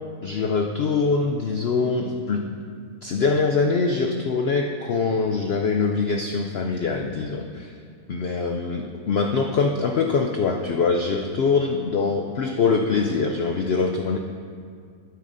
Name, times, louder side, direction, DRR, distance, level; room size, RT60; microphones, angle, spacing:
voice 1, 0.2-2.5 3.0-7.7 8.1-14.2, left 4 dB, 65° left, 2 dB, 0.6 m, -23 dB
12.5 x 9.6 x 2.6 m, 2.2 s
omnidirectional pair, 1.6 m